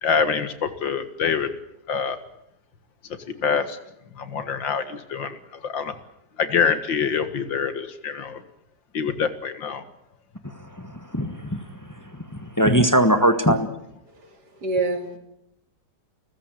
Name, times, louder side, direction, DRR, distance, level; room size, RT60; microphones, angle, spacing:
voice 1, 0.0-1.5 1.9-2.2 3.4-3.8 4.2-5.9 6.4-8.4 8.9-9.8, left 6 dB, 85° left, 11 dB, 2.4 m, -25 dB
voice 2, 10.4-11.6 12.1-13.7, right 1 dB, 10° left, 8 dB, 1.3 m, -21 dB
voice 3, 14.1-15.2, right 3 dB, 60° right, 6 dB, 3.4 m, -27 dB
29.5 x 15.0 x 9.2 m, 0.81 s
omnidirectional pair, 2.0 m